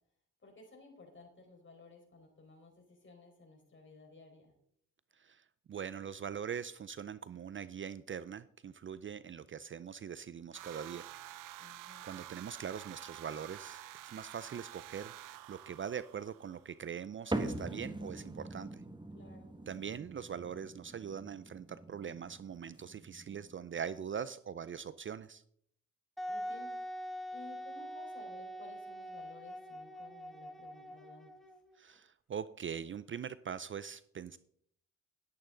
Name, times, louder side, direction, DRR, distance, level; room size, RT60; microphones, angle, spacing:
voice 1, 0.4-4.5 11.6-12.1 19.1-19.6 26.3-26.8 27.3-31.3, left 2 dB, 40° left, 1 dB, 4.6 m, -56 dB
voice 2, 5.1-11.1 11.8-18.8 19.7-25.4 31.8-34.4, right 7 dB, 40° right, 16 dB, 0.5 m, -42 dB
sound 1, 10.5-16.7, right 14 dB, 85° right, 0.7 m, -50 dB
sound 2, 17.3-24.0, right 2 dB, 15° right, 1.4 m, -43 dB
Wind instrument woodwind instrument, 26.2-31.8, equal, ahead, 1.4 m, -44 dB
11.5 x 10.5 x 3.9 m, 0.66 s
cardioid pair, 65°, 31 cm